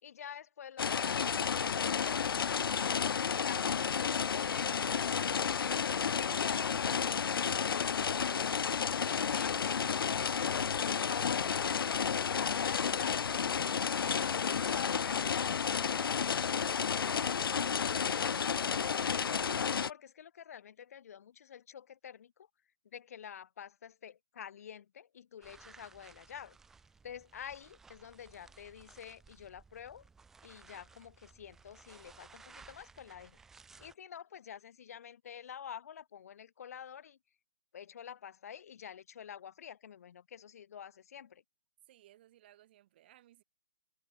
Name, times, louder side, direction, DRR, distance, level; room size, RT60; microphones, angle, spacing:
voice 1, 0.0-2.9 3.4-8.0 9.0-9.8 10.3-11.7 12.3-13.3 14.0-16.7 17.6-18.7 19.1-22.5 22.9-26.6 27.0-30.0 30.4-33.4 33.8-37.2 37.7-41.4, left 8 dB, 40° left, 3.0 m, -48 dB
sound 1, 0.8-19.9, left 7 dB, 80° left, 0.5 m, -32 dB
voice 2, 8.4-9.3 17.7-18.4 41.8-43.4, right 13 dB, 25° right, 2.2 m, -62 dB
sound 2, 25.4-33.9, right 4 dB, 5° right, 0.7 m, -58 dB
hypercardioid pair, 175°, 12 cm